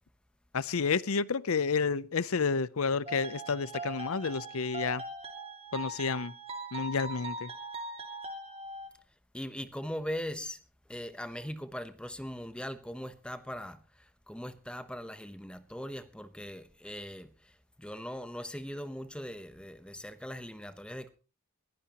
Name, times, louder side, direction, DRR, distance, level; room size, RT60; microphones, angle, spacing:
voice 1, 0.5-5.0 5.7-6.3 6.7-7.5, left 5 dB, 85° left, 0.6 m, -30 dB
sound 1, 3.1-8.9, right 2 dB, 30° right, 2.5 m, -41 dB
voice 2, 9.3-10.6 10.9-21.1, equal, 5° left, 0.9 m, -40 dB
21.5 x 15.5 x 3.0 m
head